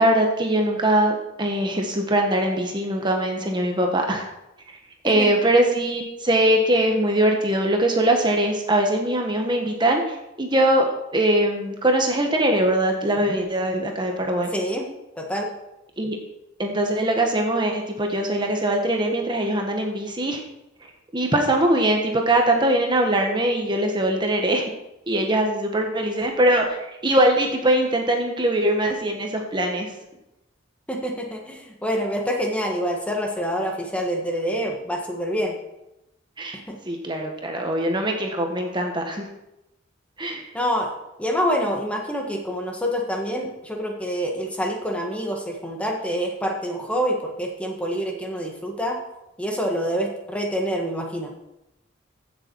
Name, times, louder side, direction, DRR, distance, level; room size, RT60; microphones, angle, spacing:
voice 1, 0.0-4.3 4.7-4.8 5.0-10.8 11.1-14.5 16.0-16.2 16.6-20.4 21.1-24.7 25.1-29.9 36.4-36.6 36.9-39.3 40.2-40.4, right 1 dB, 25° right, 2 dB, 1.4 m, -22 dB
voice 2, 14.5-14.9 15.2-15.5 30.9-35.5 36.7-36.8 40.5-40.9 41.2-49.0 49.4-51.3, equal, 5° left, 1 dB, 1.5 m, -26 dB
15.5 x 6.9 x 4.7 m, 0.90 s
head